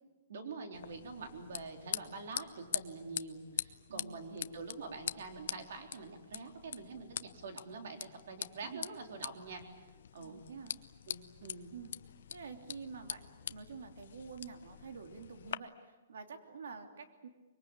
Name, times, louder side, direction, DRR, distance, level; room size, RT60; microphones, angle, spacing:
voice 1, 0.3-9.8 10.1-10.4 11.1-11.7, right 4 dB, 60° right, 5 dB, 3.9 m, -46 dB
sound 1, 0.7-15.6, left 9 dB, 60° left, 0.8 m, -44 dB
voice 2, 3.9-4.3 8.6-8.9 10.2-10.8 11.7-11.9 12.3-17.3, right 5 dB, 85° right, 6 dB, 3.0 m, -48 dB
24.5 x 23.0 x 8.8 m, 1.2 s
hypercardioid pair, 175°, 0 cm